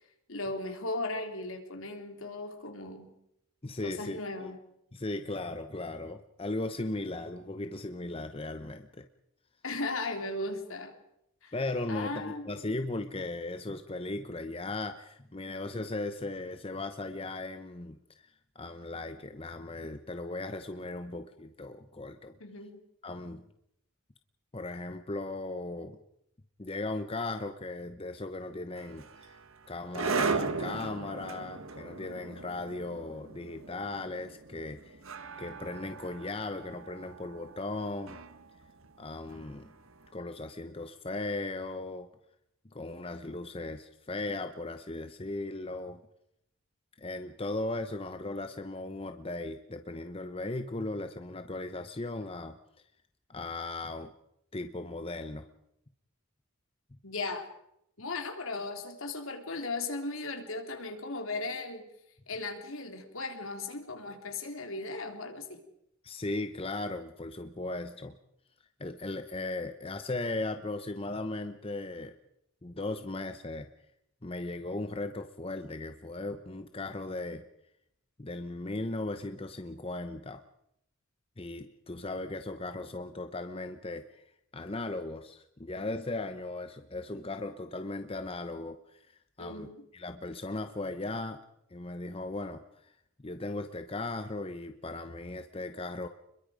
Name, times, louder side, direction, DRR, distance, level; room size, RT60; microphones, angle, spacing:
voice 1, 0.3-3.1 3.8-4.6 9.6-10.9 11.4-11.5 11.9-12.5 15.5-15.6 22.4-22.8 57.0-57.5 58.0-61.9 62.3-65.6 89.4-89.8, left 2 dB, 70° left, 5 dB, 3.5 m, -37 dB
voice 2, 3.6-4.5 4.9-9.1 11.5-22.3 23.0-23.4 24.5-26.0 26.6-29.4 29.7-35.0 35.4-38.2 39.0-39.7 40.1-42.1 42.7-46.0 47.0-52.6 53.3-54.1 54.5-55.4 66.0-68.1 68.8-72.1 72.6-73.7 74.2-77.4 78.2-80.4 81.4-84.2 84.5-91.4 91.7-92.9 93.2-96.1, left 2 dB, 25° left, 8 dB, 0.8 m, -37 dB
sound 1, 28.8-39.9, right 4 dB, 70° right, 1.5 m, -38 dB
29.0 x 22.0 x 5.1 m, 0.79 s
head